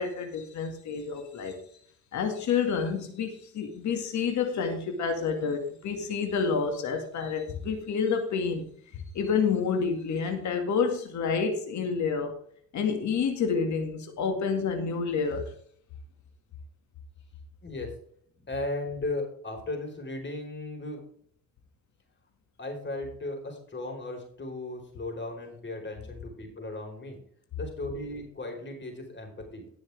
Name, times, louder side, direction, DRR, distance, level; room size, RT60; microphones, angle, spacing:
voice 1, 0.0-1.6 2.1-12.3 12.7-15.4, left 5 dB, 70° left, 4 dB, 2.2 m, -29 dB
voice 2, 17.6-17.9 18.4-21.0 22.6-27.2 27.6-29.7, left 2 dB, 40° left, 3 dB, 4.6 m, -36 dB
18.5 x 6.4 x 3.5 m, 0.62 s
cardioid pair, 90°, 30 cm